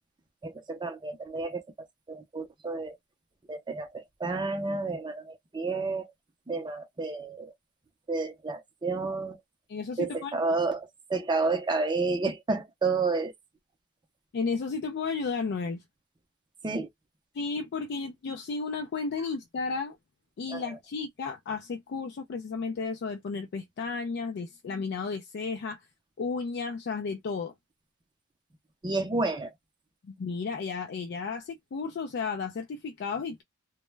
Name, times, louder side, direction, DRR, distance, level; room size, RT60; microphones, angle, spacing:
voice 1, 0.4-3.0 3.5-6.1 6.5-7.5 8.1-9.4 10.0-13.3 16.6-16.9 20.5-20.6 28.8-29.5, right 3 dB, 20° right, 0.5 m, -30 dB
voice 2, 9.7-10.4 14.3-15.8 17.3-20.0 20.4-25.8 26.2-27.5 30.0-33.4, left 4 dB, 50° left, 0.4 m, -33 dB
2.1 x 2.1 x 3.2 m
head